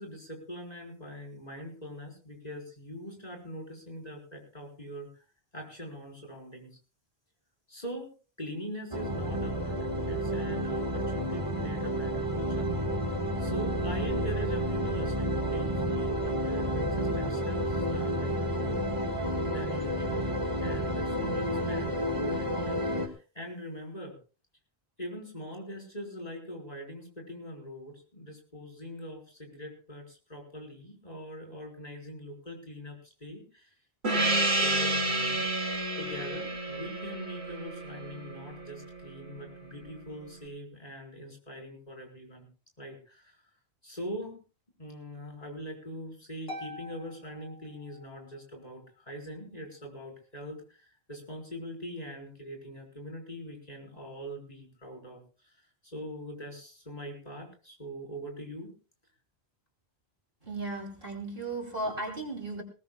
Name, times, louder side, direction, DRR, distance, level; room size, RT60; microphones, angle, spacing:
voice 1, 0.0-5.2 5.5-6.8 7.7-12.8 13.4-18.9 19.2-24.2 25.0-33.7 34.1-35.5 36.0-42.5 42.8-43.4 43.8-44.4 44.8-58.7, equal, 40° left, 0 dB, 4.9 m, -42 dB
sound 1, 8.9-23.1, equal, 30° right, 1.9 m, -30 dB
Gong, 34.0-39.0, right 2 dB, 90° right, 3.4 m, -30 dB
Harp, 46.5-48.4, left 1 dB, 70° left, 2.9 m, -45 dB
voice 2, 60.4-62.6, right 2 dB, 60° right, 1 dB, 3.4 m, -35 dB
20.5 x 19.0 x 2.4 m, 0.35 s
omnidirectional pair, 1.0 m